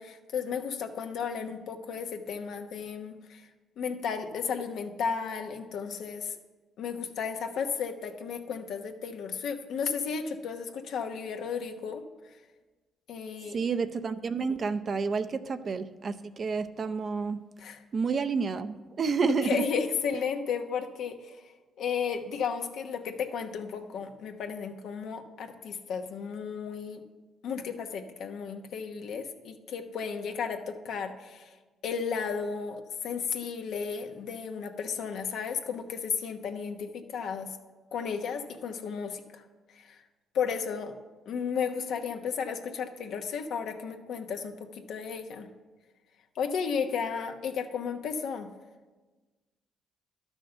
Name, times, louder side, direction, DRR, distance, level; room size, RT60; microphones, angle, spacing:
voice 1, 0.0-3.4 3.8-6.3 6.8-12.0 13.1-13.6 17.6-17.8 19.4-21.4 21.8-27.0 27.4-31.5 31.8-37.6 37.9-39.4 39.7-40.0 40.3-40.9 41.3-45.5 46.4-48.5, left 6 dB, 75° left, 5 dB, 1.0 m, -34 dB
voice 2, 13.5-17.4 17.9-19.6, right 5 dB, 45° right, 11 dB, 0.6 m, -29 dB
11.5 x 6.3 x 6.6 m, 1.3 s
cardioid pair, 90°, 0 cm